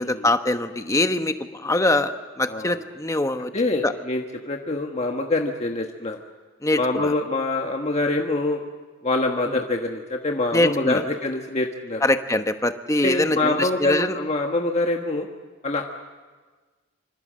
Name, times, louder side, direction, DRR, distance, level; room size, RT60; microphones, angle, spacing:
voice 1, 0.0-3.5 3.8-3.9 6.6-7.1 10.5-11.0 12.0-14.1, left 1 dB, 15° left, 8 dB, 1.1 m, -23 dB
voice 2, 2.5-2.8 3.5-6.2 6.8-8.6 9.0-12.0 13.0-15.3 15.6-15.8, left 2 dB, 35° left, 2 dB, 1.4 m, -25 dB
26.0 x 26.0 x 7.6 m, 1.4 s
head